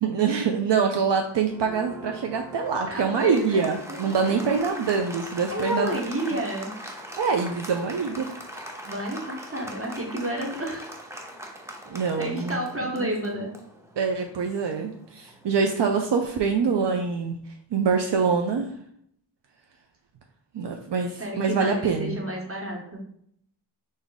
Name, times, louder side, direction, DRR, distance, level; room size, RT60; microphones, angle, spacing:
voice 1, 0.0-6.0 7.2-8.3 11.9-12.6 13.0-13.1 14.0-17.4 17.7-18.7 20.5-22.2, right 5 dB, 70° right, 3 dB, 0.5 m, -25 dB
Applause, 1.5-15.8, equal, 5° right, 0.6 m, -41 dB
voice 2, 2.9-4.4 5.5-6.7 8.8-10.9 12.2-13.5 21.2-23.0, equal, 30° right, -1 dB, 1.1 m, -30 dB
3.4 x 2.6 x 3.9 m, 0.68 s
wide cardioid pair, 55°, 44 cm